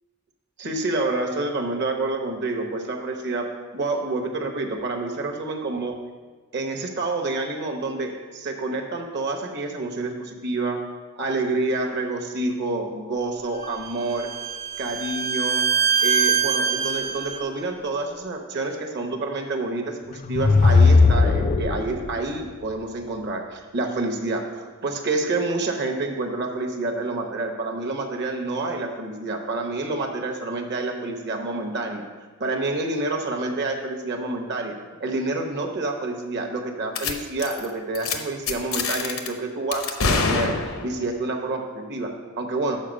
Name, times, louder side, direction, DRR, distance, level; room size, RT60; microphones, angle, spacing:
voice 1, 0.6-6.0 6.5-10.8 11.2-14.3 14.8-15.7 16.0-32.0 32.4-34.7 35.0-42.8, right 2 dB, 55° right, 3 dB, 1.0 m, -28 dB
Bowed string instrument, 13.6-17.4, right 6 dB, 35° right, 0.6 m, -24 dB
sound 1, 20.1-22.2, left 3 dB, 40° left, 0.3 m, -17 dB
sound 2, 37.0-37.1 37.4-37.7 38.0-38.2 38.5-39.3 39.7-41.0, left 4 dB, 80° left, 0.8 m, -25 dB
6.5 x 4.7 x 6.3 m, 1.4 s
head